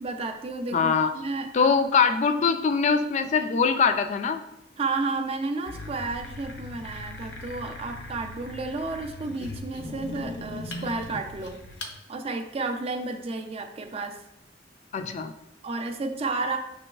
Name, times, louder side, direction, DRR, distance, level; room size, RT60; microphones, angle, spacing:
voice 1, 0.0-1.7 4.8-11.6 12.1-14.2 15.6-16.6, right 3 dB, 35° right, 5 dB, 0.4 m, -32 dB
voice 2, 0.7-1.1 1.5-4.4 14.9-15.3, left 5 dB, 40° left, 8 dB, 0.3 m, -22 dB
sound 1, 5.7-12.0, left 2 dB, 80° left, 0.6 m, -39 dB
6.1 x 3.0 x 2.3 m, 0.82 s
head